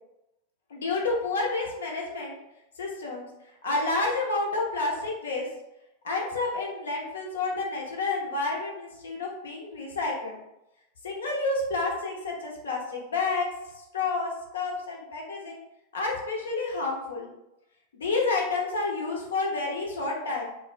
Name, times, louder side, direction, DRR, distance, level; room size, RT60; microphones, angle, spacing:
voice 1, 0.7-2.4 2.8-3.3 3.6-5.5 6.0-10.4 11.0-13.5 13.7-15.6 15.9-17.3 17.9-20.4, left 3 dB, 75° left, -1 dB, 0.5 m, -29 dB
2.5 x 2.0 x 2.4 m, 0.88 s
figure-of-eight pair, 90°, 0 cm